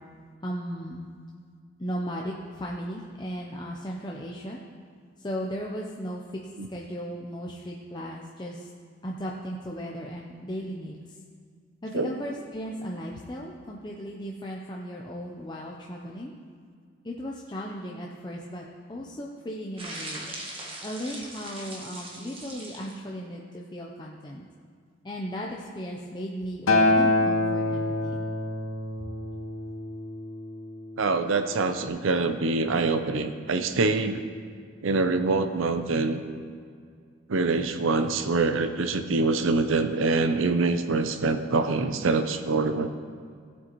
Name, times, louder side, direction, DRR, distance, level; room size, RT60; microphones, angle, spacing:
voice 1, 0.4-1.1 1.8-4.6 5.2-6.4 6.7-8.7 9.0-11.2 11.8-16.3 17.0-20.3 20.8-24.4 25.0-28.3, equal, 20° left, -2 dB, 0.6 m, -36 dB
sound 1, 19.8-23.0, right 1 dB, 25° right, 1.4 m, -40 dB
Acoustic guitar, 26.7-31.0 31.8-31.9, left 2 dB, 90° left, 0.9 m, -26 dB
voice 2, 31.0-34.2 34.8-36.2 37.3-42.9, right 3 dB, 85° right, 9 dB, 0.6 m, -25 dB
16.5 x 8.0 x 3.0 m, 2.1 s
head